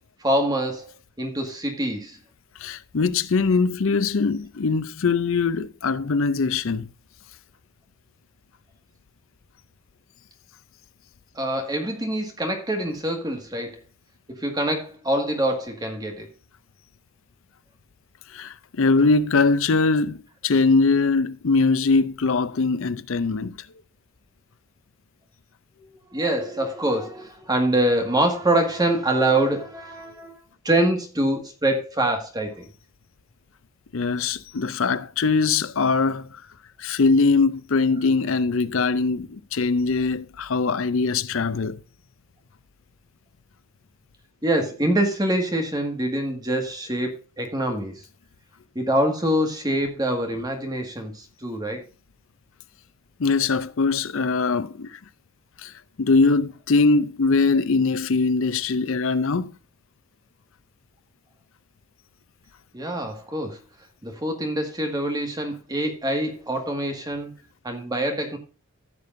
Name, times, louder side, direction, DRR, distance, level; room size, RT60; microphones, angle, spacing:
voice 1, 0.2-0.9 1.2-2.2 11.4-13.8 14.4-16.3 25.8-30.4 30.6-32.7 44.4-47.1 47.4-47.9 48.8-51.8 62.7-63.6 64.0-67.3 67.6-68.4, right 1 dB, 20° right, 1.8 m, -25 dB
voice 2, 2.6-6.9 18.3-23.5 33.9-36.3 36.8-41.8 53.2-55.0 55.6-55.7 56.0-59.5, left 4 dB, 65° left, 0.6 m, -22 dB
15.0 x 6.8 x 2.6 m
head